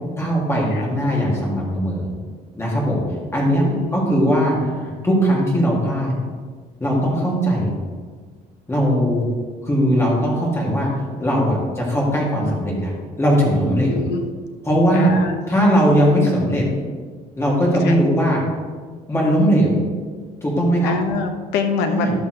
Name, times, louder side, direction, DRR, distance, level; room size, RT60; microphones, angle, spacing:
voice 1, 0.2-2.1 2.5-3.0 3.3-3.6 3.9-6.1 6.8-7.7 8.7-9.2 9.6-10.9 11.2-14.0 14.6-15.1 15.5-16.6 17.4-18.4 19.1-19.8 20.4-20.9 21.9-22.1, equal, 15° left, -4 dB, 2.8 m, -19 dB
voice 2, 3.5-4.0 13.9-14.3 14.9-15.8 17.8-17.9 20.8-22.1, left 5 dB, 85° left, 5 dB, 1.1 m, -25 dB
11.5 x 7.2 x 3.3 m, 1.5 s
cardioid pair, 110°, 17 cm